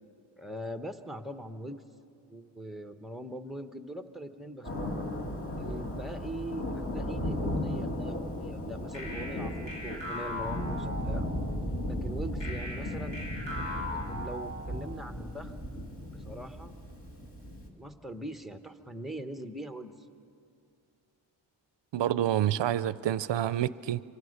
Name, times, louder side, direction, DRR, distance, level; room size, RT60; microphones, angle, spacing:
voice 1, 0.4-1.8 2.3-5.1 5.6-11.3 11.9-13.2 13.9-15.5 16.1-16.8 17.7-19.9, right 1 dB, ahead, 0.9 m, -41 dB
Thunder, 4.6-17.7, left 1 dB, 30° left, 2.4 m, -36 dB
sound 1, 8.9-11.5 12.4-14.9, left 1 dB, 75° left, 7.1 m, -39 dB
voice 2, 21.9-24.0, right 11 dB, 70° right, 0.6 m, -28 dB
25.5 x 24.0 x 6.5 m
wide cardioid pair, 160°, 45 cm